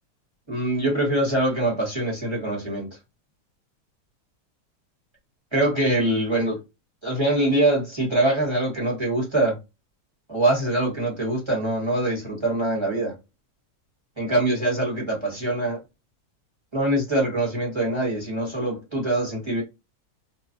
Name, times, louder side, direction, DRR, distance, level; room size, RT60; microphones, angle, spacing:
voice 1, 0.5-2.9 5.5-6.6 7.0-9.6 10.3-13.1 14.2-15.8 16.7-19.6, right 1 dB, 20° right, 1.1 m, -23 dB
3.1 x 2.1 x 2.5 m
omnidirectional pair, 1.7 m